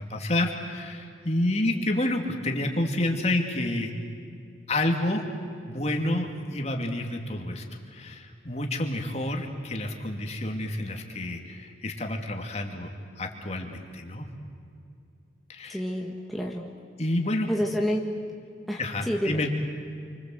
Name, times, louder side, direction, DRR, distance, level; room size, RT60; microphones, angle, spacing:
voice 1, 0.0-3.9 4.7-5.3 5.7-12.9 13.2-14.2 15.5-15.8 17.0-17.5 18.8-19.5, left 1 dB, 35° left, 3 dB, 2.7 m, -29 dB
voice 2, 15.7-16.6 17.5-18.1 18.7-18.8 19.1-19.4, equal, ahead, -2 dB, 1.7 m, -28 dB
29.0 x 25.0 x 8.0 m, 2.5 s
head